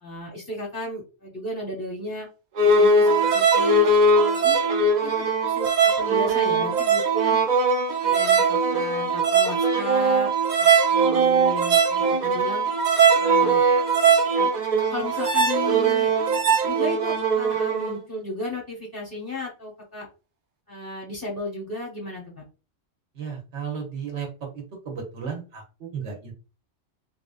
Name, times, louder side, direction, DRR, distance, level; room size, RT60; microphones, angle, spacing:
voice 1, 0.0-2.3 2.6-3.9 4.4-4.6 5.0-7.4 8.0-10.3 10.6-12.7 13.2-13.7 14.3-14.5 14.7-20.1 20.7-22.2, left 2 dB, 15° left, -4 dB, 0.8 m, -34 dB
sound 1, 2.6-17.9, right 4 dB, 55° right, 0.5 m, -20 dB
voice 2, 23.1-24.3 24.5-26.3, right 6 dB, 75° right, 0 dB, 1.2 m, -34 dB
3.4 x 2.5 x 2.4 m, 0.32 s
omnidirectional pair, 1.2 m